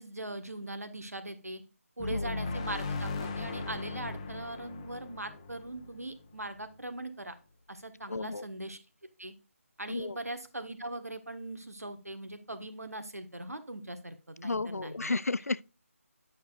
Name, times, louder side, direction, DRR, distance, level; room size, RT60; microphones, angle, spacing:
voice 1, 0.0-1.6 2.0-7.3 7.7-8.8 9.2-9.3 9.8-15.1, right 1 dB, 85° right, 1.4 m, -40 dB
sound 1, 2.0-6.6, left 3 dB, 20° left, 0.8 m, -37 dB
voice 2, 8.1-8.5 9.9-10.2 14.4-15.6, left 3 dB, 90° left, 0.4 m, -33 dB
9.3 x 6.5 x 2.4 m
figure-of-eight pair, 160°, 8 cm